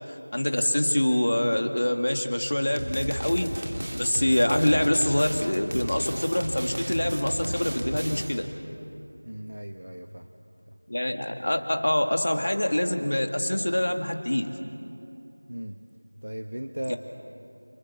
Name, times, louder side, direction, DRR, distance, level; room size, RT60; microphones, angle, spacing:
voice 1, 0.1-3.5 4.0-8.5 10.9-14.5 16.9-17.0, left 1 dB, 40° left, 5 dB, 2.1 m, -25 dB
sound 1, 2.8-8.5, right 1 dB, 30° right, 2.1 m, -34 dB
voice 2, 9.2-10.4 15.5-15.8 16.2-16.9, right 1 dB, 60° right, 6 dB, 1.4 m, -36 dB
28.5 x 28.0 x 7.4 m, 2.7 s
figure-of-eight pair, 180°, 0 cm